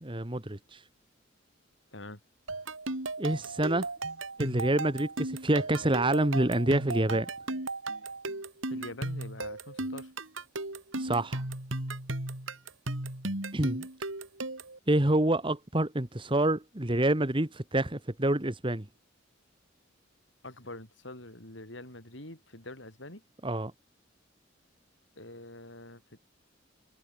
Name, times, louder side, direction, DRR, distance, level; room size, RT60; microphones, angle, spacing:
voice 1, 0.0-0.8 3.2-3.9 4.4-7.3 11.0-11.4 13.5-13.9 14.9-18.9 23.4-23.7, right 1 dB, 25° right, 1.7 m, -27 dB
sound 1, 2.5-14.8, right 2 dB, 90° right, 4.0 m, -36 dB
voice 2, 8.7-10.1 20.4-23.2 25.2-26.2, left 1 dB, 65° left, 7.5 m, -45 dB
head